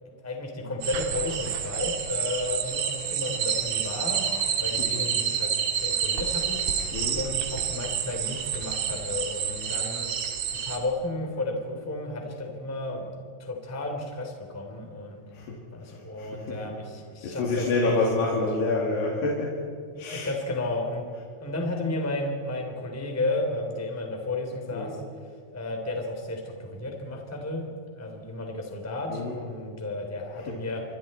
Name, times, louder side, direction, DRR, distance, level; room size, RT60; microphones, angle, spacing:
voice 1, 0.0-6.6 7.1-10.1 10.5-15.2 15.7-18.4 20.1-21.1 21.4-25.0 25.5-27.7 27.9-30.8, left 2 dB, 5° left, 2 dB, 2.4 m, -33 dB
sound 1, 0.8-10.8, right 8 dB, 65° right, 3.5 m, -29 dB
voice 2, 4.7-5.0 6.9-7.3 15.3-15.6 15.8-16.6 17.2-19.5 20.0-20.4 21.1-21.2 24.7-25.0 29.1-29.4 30.3-30.6, left 3 dB, 65° left, -4 dB, 4.8 m, -28 dB
29.5 x 24.0 x 4.4 m, 2.4 s
omnidirectional pair, 5.3 m